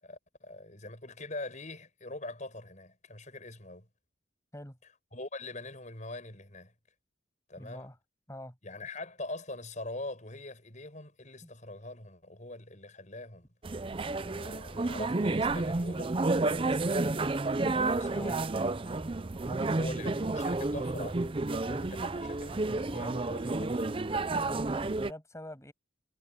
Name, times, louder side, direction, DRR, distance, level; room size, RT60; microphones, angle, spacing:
voice 1, 0.0-3.9 5.1-6.7 7.5-7.9 8.6-13.5 14.2-16.1 16.5-17.2 17.9-18.5 19.7-24.0, left 2 dB, 40° left, 7.2 m, -43 dB
voice 2, 7.6-8.0 8.3-8.6 11.4-11.5 18.1-18.4 19.4-20.1 24.4-25.7, left 1 dB, 15° left, 7.4 m, -46 dB
sound 1, 13.6-25.1, right 2 dB, 25° right, 0.5 m, -31 dB
head